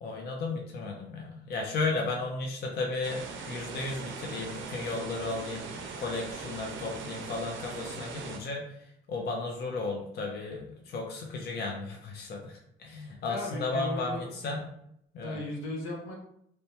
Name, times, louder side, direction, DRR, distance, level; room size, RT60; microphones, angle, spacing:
voice 1, 0.0-8.7 9.1-14.7 15.1-15.4, left 3 dB, 55° left, 1 dB, 0.5 m, -34 dB
sound 1, 3.0-8.4, right 5 dB, 80° right, 0.5 m, -40 dB
voice 2, 13.3-14.3 15.2-16.1, left 1 dB, 85° left, 0 dB, 0.7 m, -36 dB
2.9 x 2.2 x 2.7 m, 0.72 s
cardioid pair, 90°, 20 cm